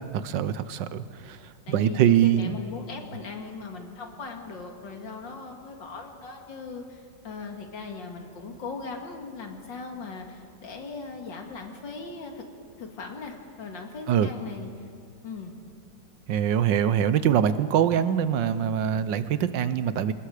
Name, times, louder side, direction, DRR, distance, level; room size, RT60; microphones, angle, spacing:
voice 1, 0.1-1.4 1.7-2.6 14.1-14.3 16.3-20.1, right 9 dB, 80° right, 13 dB, 1.5 m, -23 dB
voice 2, 1.7-12.5 12.8-14.9 15.2-15.5, left 4 dB, 80° left, 3 dB, 2.7 m, -39 dB
27.0 x 19.5 x 5.0 m, 2.3 s
omnidirectional pair, 2.0 m